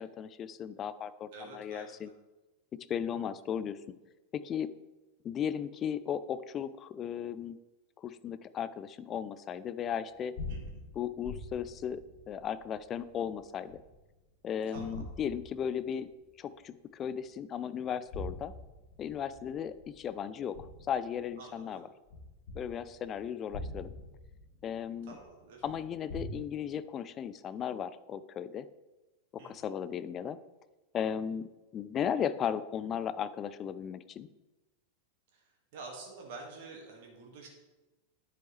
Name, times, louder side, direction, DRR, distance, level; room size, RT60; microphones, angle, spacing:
voice 1, 0.0-2.1 2.9-3.8 4.3-4.7 5.2-7.6 8.0-10.3 10.9-12.0 12.3-13.8 14.4-16.1 16.4-18.5 19.0-21.9 22.5-23.9 24.6-25.2 25.6-28.7 29.3-30.4 30.9-34.3, left 8 dB, 30° left, 14 dB, 0.4 m, -36 dB
voice 2, 1.3-1.9 10.5-10.8 14.7-15.0 21.4-21.8 25.1-25.6 29.4-29.7 35.3-35.4 35.7-37.5, right 3 dB, 50° right, 0 dB, 1.8 m, -48 dB
sound 1, 10.1-14.2 14.8-16.1 16.6-16.7 17.8-21.5 22.1-26.3, left 2 dB, 55° left, 2.1 m, -45 dB
9.9 x 7.8 x 3.2 m, 1.1 s
figure-of-eight pair, 90°, 0 cm